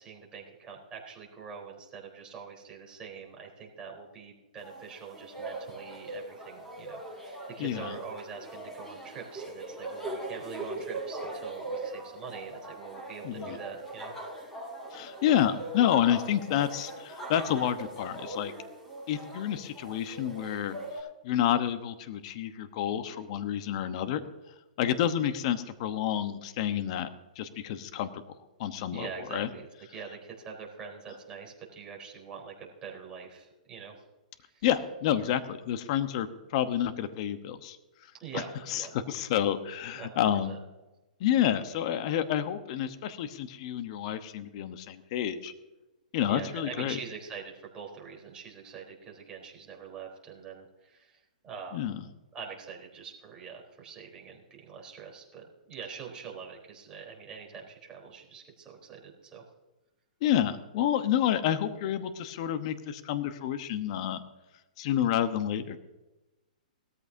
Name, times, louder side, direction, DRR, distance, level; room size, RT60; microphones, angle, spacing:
voice 1, 0.0-14.1 28.9-34.0 34.4-34.7 38.1-38.9 40.0-40.6 46.3-52.0 52.3-59.4, right 6 dB, 20° right, -1 dB, 3.9 m, -44 dB
sound 1, 4.6-21.0, right 1 dB, 10° left, 5.4 m, -41 dB
voice 2, 7.6-8.0 13.2-13.6 14.9-18.5 19.1-20.8 21.2-24.2 24.8-27.1 27.4-28.2 28.6-29.5 34.6-37.8 38.3-40.6 41.2-45.5 46.1-47.0 51.7-52.0 60.2-64.2 64.8-65.8, left 10 dB, 45° left, 10 dB, 1.1 m, -29 dB
19.0 x 14.0 x 2.8 m, 1.1 s
hypercardioid pair, 140°, 5 cm